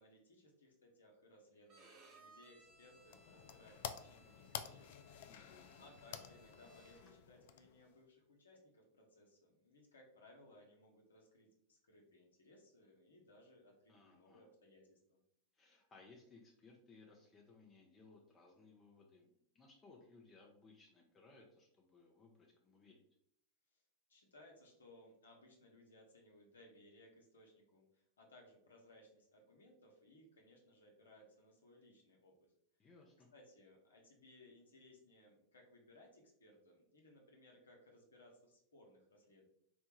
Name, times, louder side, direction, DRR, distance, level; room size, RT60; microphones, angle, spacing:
voice 1, 0.0-15.2 23.7-23.8 24.1-32.3 33.3-39.5, left 1 dB, 85° left, 0 dB, 0.9 m, -64 dB
Bowed string instrument, 1.7-7.2, right 2 dB, 40° right, 1.0 m, -66 dB
sound 1, 2.6-8.0, left 9 dB, 65° left, 0.3 m, -51 dB
voice 2, 5.3-5.8 13.9-14.5 15.5-23.0 32.8-33.3, left 3 dB, 25° left, -1 dB, 0.7 m, -63 dB
4.2 x 2.3 x 3.0 m, 0.69 s
hypercardioid pair, 95°, 0 cm